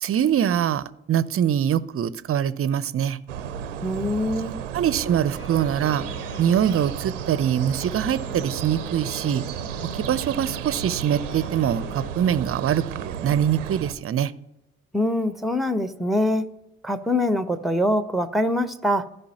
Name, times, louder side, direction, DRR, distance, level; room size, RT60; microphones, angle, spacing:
voice 1, 0.0-3.2 4.7-6.0 6.4-9.4 9.9-14.3, right 9 dB, 40° right, 16 dB, 0.6 m, -23 dB
sound 1, 3.3-13.9, right 8 dB, 85° right, 0.6 m, -33 dB
voice 2, 3.8-4.6 14.9-16.4 16.8-19.0, left 1 dB, ahead, 11 dB, 0.9 m, -23 dB
sound 2, 5.4-12.1, left 6 dB, 35° left, 1.2 m, -43 dB
15.5 x 5.3 x 2.9 m, 0.87 s
figure-of-eight pair, 45°, 36 cm